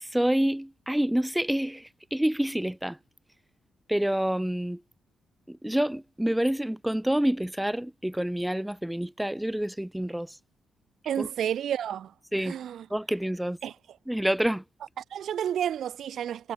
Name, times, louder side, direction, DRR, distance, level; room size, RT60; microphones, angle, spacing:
voice 1, 0.0-3.0 3.9-4.8 5.5-10.4 11.2-11.3 12.3-12.6 12.9-13.6 14.1-14.6, right 1 dB, 5° right, 1.2 m, -27 dB
voice 2, 11.1-12.1 12.4-12.9 13.6-13.8 15.0-16.5, right 9 dB, 75° right, 2.1 m, -31 dB
cardioid pair, 80°, 0 cm